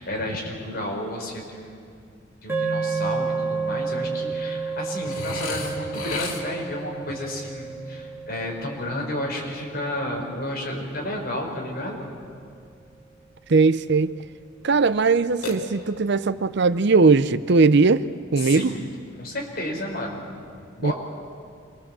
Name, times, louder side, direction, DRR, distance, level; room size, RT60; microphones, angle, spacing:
voice 1, 0.0-1.8 2.4-12.1 18.4-18.9 19.2-20.2 20.8-20.9, left 1 dB, 45° left, 0 dB, 4.7 m, -31 dB
sound 1, 2.5-10.9, right 4 dB, 10° right, 3.3 m, -31 dB
Burping eructation, 5.1-6.8 15.4-16.2, left 4 dB, 90° left, 2.8 m, -33 dB
voice 2, 13.5-14.1 14.6-18.0 18.3-18.7 20.8-20.9, right 4 dB, 55° right, 14 dB, 0.6 m, -19 dB
26.0 x 22.0 x 7.6 m, 2.4 s
head